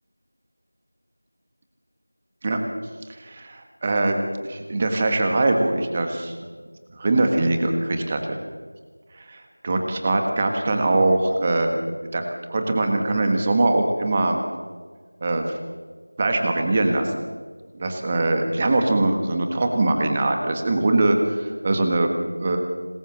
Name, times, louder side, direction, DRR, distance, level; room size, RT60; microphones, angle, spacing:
voice 1, 3.1-4.2 4.5-6.4 6.9-8.4 9.1-11.8 12.1-12.2 12.5-14.4 15.2-15.6 16.2-17.2 17.7-22.1 22.4-22.6, right 2 dB, 15° right, 4 dB, 1.6 m, -22 dB
26.5 x 21.0 x 7.3 m, 1.5 s
figure-of-eight pair, 175°, 0 cm